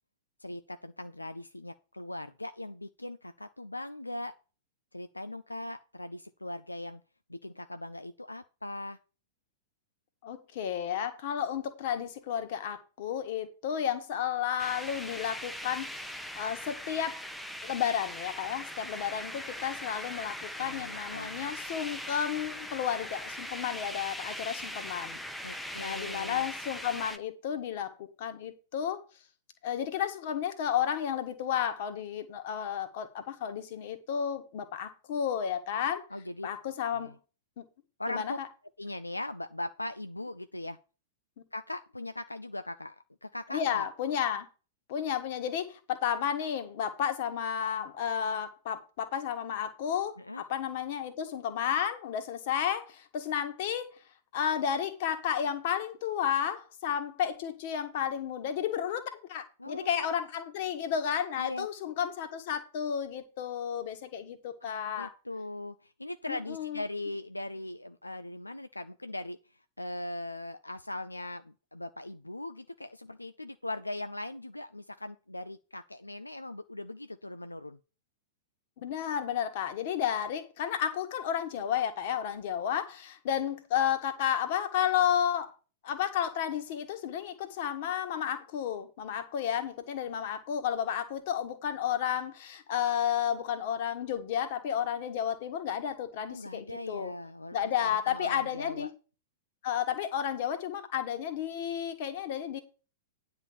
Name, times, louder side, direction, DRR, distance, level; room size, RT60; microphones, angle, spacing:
voice 1, 0.4-4.3 4.9-7.0 7.3-9.0 20.6-21.5 25.4-26.5 36.1-36.5 36.9-37.1 38.0-38.4 38.8-40.8 41.5-43.9 50.2-50.4 59.6-60.2 61.4-61.7 64.6-69.4 69.8-77.8 96.3-98.9, left 1 dB, 85° left, 0.5 m, -40 dB
voice 2, 10.2-17.2 17.6-25.2 25.8-29.0 29.6-36.0 36.4-37.1 37.6-37.7 38.1-38.5 43.5-44.5 44.9-53.9 54.3-65.1 66.3-66.8 78.8-85.5 85.8-97.1 97.5-98.9 99.6-102.6, left 9 dB, 50° left, 1.6 m, -32 dB
sound 1, 14.6-27.2, equal, ahead, 0.8 m, -40 dB
9.7 x 4.2 x 7.1 m
figure-of-eight pair, 100°, 0 cm